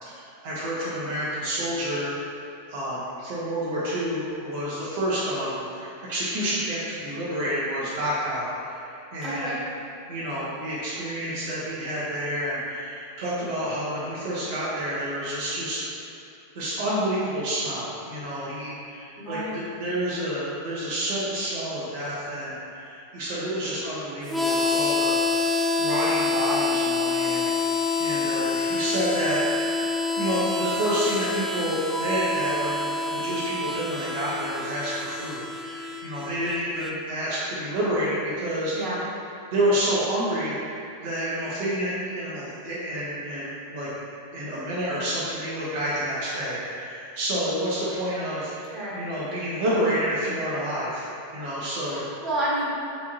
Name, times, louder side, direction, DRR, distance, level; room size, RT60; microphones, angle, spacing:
voice 1, 0.0-2.1 2.7-8.8 9.1-9.6 10.1-15.8 16.5-25.2 25.8-27.5 28.0-29.4 30.2-38.7 39.5-40.8 41.0-43.9 44.3-48.5 48.9-51.0 51.3-52.0, equal, 55° right, -10 dB, 1.0 m, -29 dB
voice 2, 9.2-9.6 19.2-19.7 38.7-39.0 48.7-49.1 51.8-52.7, right 1 dB, 20° right, -8 dB, 1.3 m, -30 dB
Harmonica, 24.3-36.9, left 3 dB, ahead, 0.3 m, -27 dB
4.2 x 3.5 x 2.9 m, 2.7 s
figure-of-eight pair, 90°, 0 cm